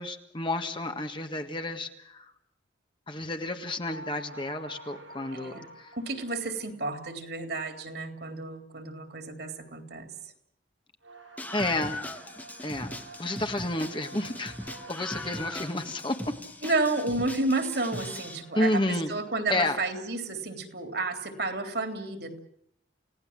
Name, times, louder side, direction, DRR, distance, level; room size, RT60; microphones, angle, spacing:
voice 1, 0.0-2.3 3.1-5.9 11.5-12.0 12.6-12.9 13.2-16.2 18.5-19.1 19.5-19.8, left 2 dB, 25° left, 6 dB, 1.7 m, -31 dB
sound 1, 3.8-7.2 11.0-17.1 17.7-19.6 19.9-20.2, right 2 dB, 85° right, 6.1 m, -49 dB
voice 2, 5.3-5.7 5.9-10.3 16.6-22.4, right 3 dB, 60° right, 6 dB, 3.5 m, -31 dB
Screaming, 11.4-18.4, left 1 dB, 10° left, 1.2 m, -40 dB
29.5 x 17.5 x 7.5 m, 0.69 s
head